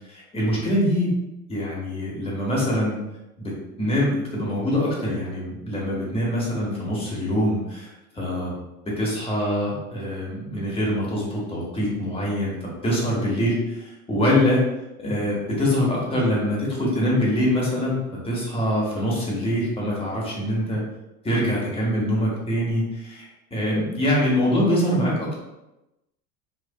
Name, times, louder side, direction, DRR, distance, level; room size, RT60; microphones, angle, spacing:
voice 1, 0.1-1.2 1.5-3.0 3.4-3.5 3.8-8.5 9.0-14.6 15.0-20.8 21.2-23.3 23.5-25.4, equal, 10° left, -4 dB, 1.0 m, -24 dB
3.2 x 2.5 x 2.2 m, 0.96 s
figure-of-eight pair, 80°, 46 cm